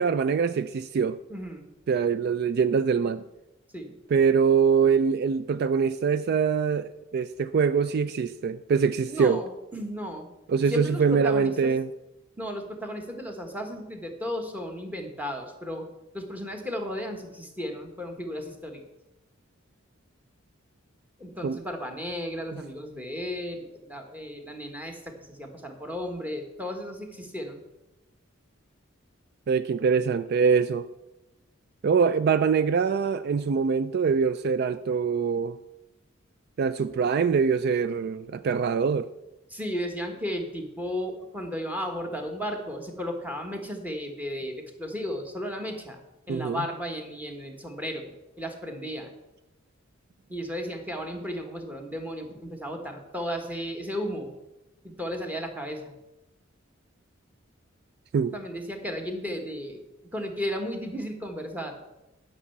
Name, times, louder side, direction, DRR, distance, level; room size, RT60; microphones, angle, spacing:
voice 1, 0.0-1.2 1.9-3.2 4.1-9.4 10.5-11.9 21.4-21.6 29.5-30.9 31.8-35.6 36.6-39.1 46.3-46.6 58.1-58.3, right 6 dB, 50° right, 0.3 m, -24 dB
voice 2, 1.3-1.6 3.7-3.9 9.1-11.8 12.4-15.9 16.1-18.8 21.2-27.6 39.5-49.1 50.3-54.3 54.8-55.9 58.3-59.8 60.1-61.7, equal, 10° right, 1.4 m, -34 dB
11.0 x 5.5 x 7.1 m
head